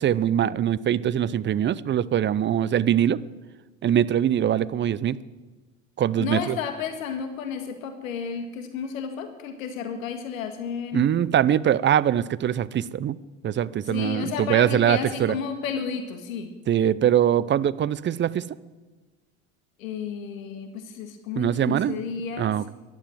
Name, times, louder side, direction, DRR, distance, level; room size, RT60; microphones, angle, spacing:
voice 1, 0.0-3.2 3.8-5.2 6.0-6.6 10.9-13.2 13.4-15.4 16.7-18.4 21.3-22.0 22.4-22.7, right 10 dB, 30° right, 20 dB, 0.6 m, -22 dB
voice 2, 6.2-11.1 13.9-16.5 19.8-22.5, left 6 dB, 75° left, 7 dB, 1.8 m, -32 dB
14.5 x 11.5 x 7.7 m, 1.2 s
hypercardioid pair, 70°, 41 cm